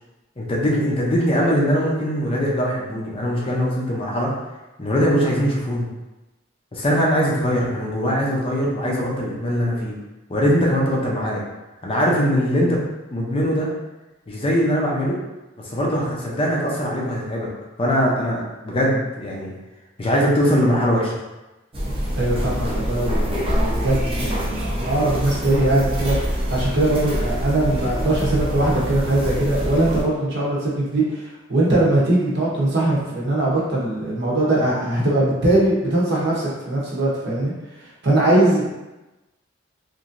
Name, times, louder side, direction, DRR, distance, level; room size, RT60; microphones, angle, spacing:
voice 1, 0.4-4.3 4.8-5.9 6.7-10.0 10.3-11.4 11.8-12.8 13.1-13.7 14.3-15.2 15.6-17.5 17.8-19.5 20.0-21.2, equal, 25° left, -4 dB, 0.5 m, -21 dB
sound 1, 21.7-30.0, equal, 30° right, 0.6 m, -25 dB
voice 2, 22.1-37.5 38.0-38.7, right 1 dB, 60° right, -5 dB, 0.8 m, -21 dB
3.0 x 2.6 x 2.5 m, 1.0 s
head